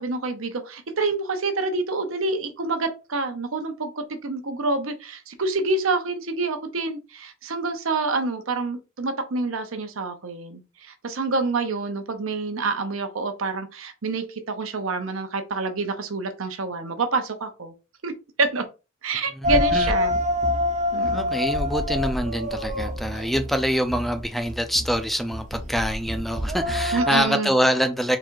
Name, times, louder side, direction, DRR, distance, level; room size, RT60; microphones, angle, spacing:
voice 1, 0.0-17.7 18.0-18.1 18.4-18.6 19.0-20.2 20.9-21.4 26.9-27.5, right 3 dB, 80° right, 0.8 m, -27 dB
voice 2, 19.4-19.9 21.1-28.2, equal, ahead, 0.4 m, -25 dB
sound 1, 19.4-27.2, left 1 dB, 35° right, 0.6 m, -26 dB
3.9 x 2.4 x 4.6 m
head